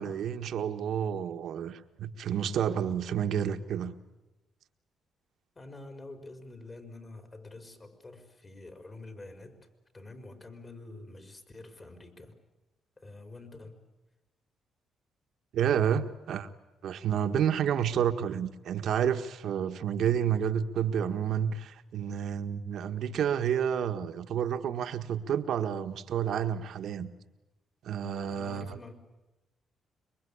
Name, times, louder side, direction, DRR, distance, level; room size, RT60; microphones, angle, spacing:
voice 1, 0.0-3.9 15.5-16.5 16.8-27.1 27.8-28.9, right 8 dB, 70° right, 8 dB, 1.6 m, -30 dB
voice 2, 5.5-9.7 9.9-12.3 13.0-13.9 28.3-28.9, left 2 dB, 30° left, 8 dB, 4.9 m, -47 dB
26.0 x 23.0 x 8.6 m, 1.0 s
cardioid pair, 90°, 0 cm